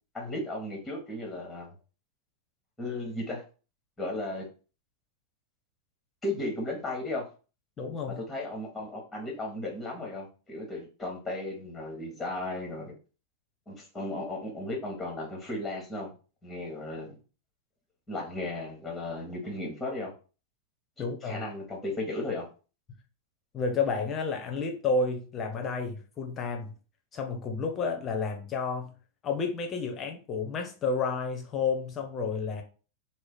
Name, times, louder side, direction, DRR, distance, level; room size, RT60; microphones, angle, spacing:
voice 1, 0.1-1.7 2.8-3.4 4.0-4.4 6.2-7.2 8.2-13.0 13.7-16.1 16.4-17.2 18.1-20.2 21.0-22.5, left 2 dB, 5° left, 1.2 m, -35 dB
voice 2, 7.8-8.2 21.0-21.4 23.5-26.7 27.1-28.9 29.2-32.6, left 4 dB, 25° left, 0.8 m, -31 dB
3.1 x 2.1 x 3.9 m
figure-of-eight pair, 90°, 0 cm